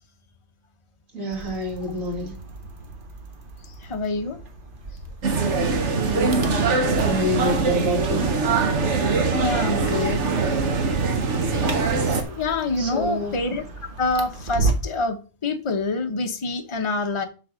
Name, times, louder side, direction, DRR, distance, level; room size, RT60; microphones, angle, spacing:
voice 1, 1.1-2.3 6.0-6.5 7.0-8.3 12.8-13.3, equal, 90° right, 1 dB, 2.9 m, -27 dB
sound 1, 1.3-15.0, right 3 dB, 45° right, 1.3 m, -34 dB
voice 2, 3.8-4.4 9.4-10.2 12.2-17.2, left 3 dB, 25° left, 5 dB, 0.9 m, -26 dB
sound 2, 5.2-12.2, right 4 dB, 60° right, 1.5 m, -22 dB
7.9 x 4.1 x 6.2 m, 0.35 s
omnidirectional pair, 1.4 m